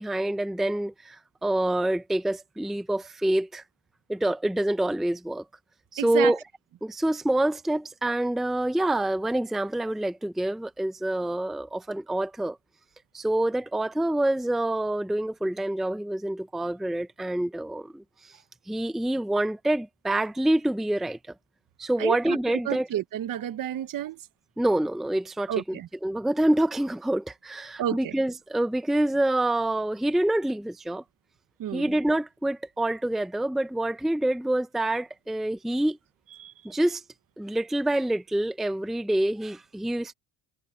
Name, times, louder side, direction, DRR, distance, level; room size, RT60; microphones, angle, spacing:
voice 1, 0.0-3.6 4.1-5.4 5.9-6.4 6.8-12.6 13.1-18.0 18.7-21.2 21.8-22.9 24.6-31.0 31.7-36.0 36.6-37.0 37.4-40.1, right 1 dB, ahead, 0.6 m, -26 dB
voice 2, 6.0-6.3 22.0-22.4 22.7-24.2 25.5-25.9 27.8-28.1 31.6-31.9 36.4-36.5, right 11 dB, 50° right, 1.1 m, -30 dB
cardioid pair, 130°, 43 cm